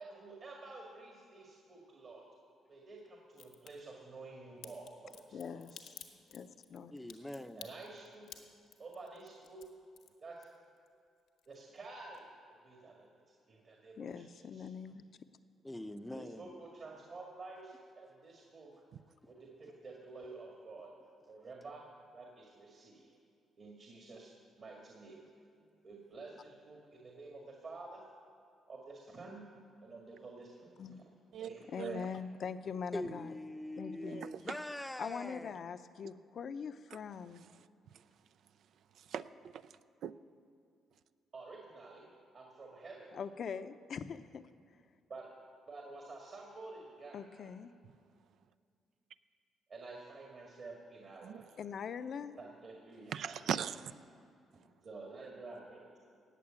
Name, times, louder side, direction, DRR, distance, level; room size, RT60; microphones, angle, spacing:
voice 1, 0.0-2.2 2.7-5.9 7.6-8.3 8.8-9.6 10.2-10.5 11.5-13.1 13.5-14.7 16.1-17.7 18.0-18.7 19.2-20.9 21.3-21.8 22.1-23.1 23.6-25.2 25.8-28.0 28.7-29.5 29.8-31.0 31.4-32.2 41.3-42.1 42.3-43.2 45.1-45.3 45.7-47.5 49.7-51.5 52.4-53.4 54.8-55.9, right 3 dB, 50° right, 2.0 m, -50 dB
Crack, 3.4-3.7 4.6-10.9 11.2-11.9 12.1-12.2, left 9 dB, 85° left, 1.3 m, -53 dB
voice 2, 5.3-5.7 6.3-6.9 14.0-15.0 30.8-31.0 31.7-33.3 33.8-34.2 35.0-37.4 43.1-44.5 47.1-47.7 51.6-52.4, left 6 dB, 55° left, 0.6 m, -42 dB
voice 3, 6.9-7.7 15.6-16.5 19.2-19.3 32.9-35.7, left 1 dB, 10° left, 0.7 m, -43 dB
voice 4, 31.3-32.1 34.0-34.4 39.0-39.7 40.0-40.1 51.2-51.4 53.1-53.9, right 8 dB, 70° right, 0.5 m, -40 dB
17.5 x 6.7 x 8.8 m
cardioid pair, 90°, 0 cm